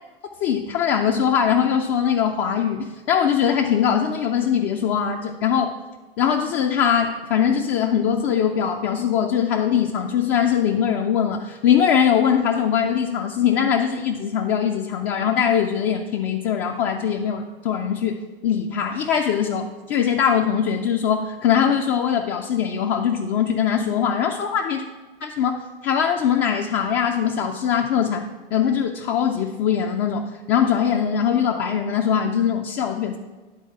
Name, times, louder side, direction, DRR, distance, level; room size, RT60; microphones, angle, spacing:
voice 1, 0.4-5.8 6.2-24.8 25.2-33.2, left 8 dB, 45° left, 2 dB, 0.6 m, -21 dB
10.5 x 3.9 x 4.6 m, 1.3 s
figure-of-eight pair, 90°, 29 cm